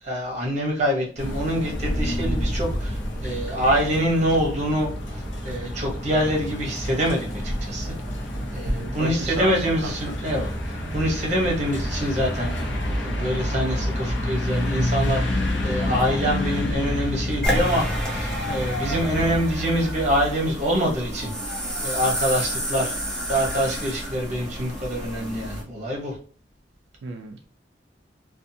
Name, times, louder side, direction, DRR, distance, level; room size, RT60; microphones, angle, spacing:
voice 1, 0.0-7.9 8.5-12.6 13.0-21.3 21.8-23.0 23.3-26.2, equal, 40° right, -1 dB, 0.9 m, -25 dB
sound 1, 1.2-19.4, left 1 dB, 90° left, 0.6 m, -28 dB
voice 2, 8.7-9.9 27.0-27.5, right 3 dB, 80° right, 3 dB, 0.3 m, -33 dB
sound 2, 17.4-25.6, equal, 5° left, 0.6 m, -29 dB
2.5 x 2.3 x 2.6 m, 0.41 s
head